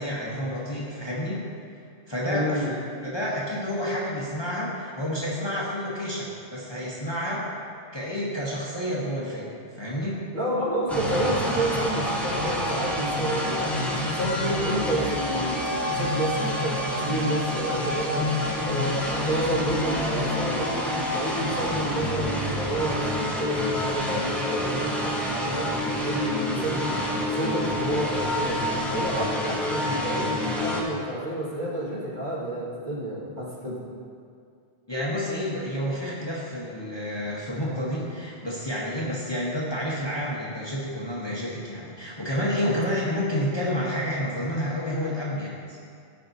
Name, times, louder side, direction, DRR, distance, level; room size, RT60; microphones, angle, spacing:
voice 1, 0.0-1.4 2.1-7.5 7.9-10.2 34.9-45.8, equal, 25° left, -6 dB, 1.0 m, -29 dB
voice 2, 2.3-2.7 10.3-25.2 25.4-28.6 28.9-33.8 42.6-42.8, right 1 dB, 45° right, -8 dB, 2.0 m, -30 dB
sound 1, 10.9-30.8, left 1 dB, ahead, 0.9 m, -28 dB
13.0 x 5.6 x 2.7 m, 2.3 s
omnidirectional pair, 1.2 m